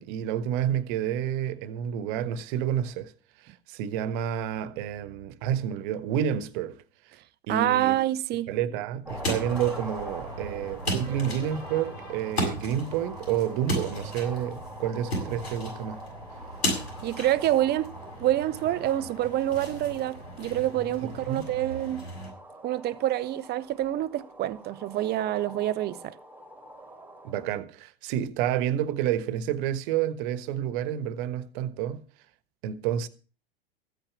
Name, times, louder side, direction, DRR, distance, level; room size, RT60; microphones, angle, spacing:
voice 1, 0.0-3.1 3.4-6.8 7.1-7.2 7.5-8.0 8.5-16.0 21.0-21.4 27.2-32.0 32.6-33.1, right 10 dB, 55° right, 1.3 m, -29 dB
voice 2, 7.5-8.5 17.0-17.9 18.2-22.1 22.6-26.1, right 13 dB, 30° right, 0.8 m, -27 dB
sound 1, 9.1-22.3, equal, 85° left, 7.1 m, -36 dB
sound 2, 9.1-27.5, right 1 dB, 5° right, 2.6 m, -44 dB
15.0 x 8.9 x 5.9 m
figure-of-eight pair, 90°, 31 cm